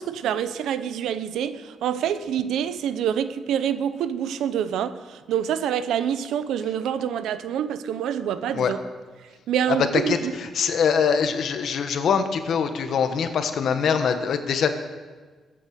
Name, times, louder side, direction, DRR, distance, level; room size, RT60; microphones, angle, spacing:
voice 1, 0.0-5.0 5.3-8.8 9.5-10.3, right 9 dB, 85° right, 0.8 m, -26 dB
voice 2, 9.7-14.7, left 6 dB, 55° left, 1.3 m, -23 dB
21.0 x 8.8 x 6.5 m
cardioid pair, 160°, 0 cm